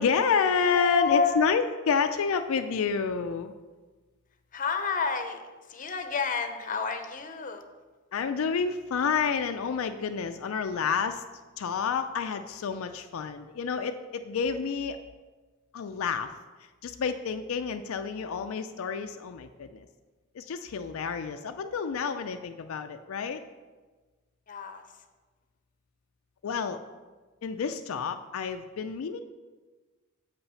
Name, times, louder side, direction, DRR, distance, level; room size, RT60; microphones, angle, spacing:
voice 1, 0.0-3.5 8.1-11.2 11.6-15.0 15.7-16.3 16.8-19.9 20.3-23.4 26.4-26.8 27.4-29.2, left 6 dB, 80° left, 7 dB, 0.4 m, -29 dB
voice 2, 0.7-1.3 4.5-7.6 24.5-25.0, left 5 dB, 40° left, 7 dB, 0.7 m, -30 dB
7.6 x 5.6 x 5.5 m, 1.3 s
head